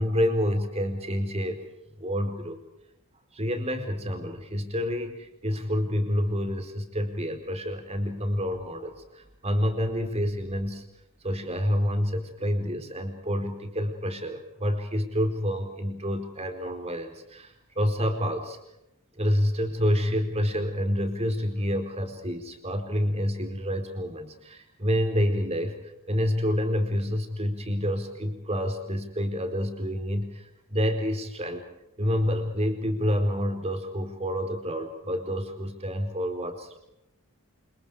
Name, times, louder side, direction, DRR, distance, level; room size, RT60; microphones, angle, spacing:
voice 1, 0.0-1.6 2.0-2.6 3.3-10.8 11.2-18.6 19.1-31.6 32.0-36.8, equal, 30° right, 5 dB, 4.4 m, -28 dB
28.5 x 28.5 x 5.0 m, 0.84 s
head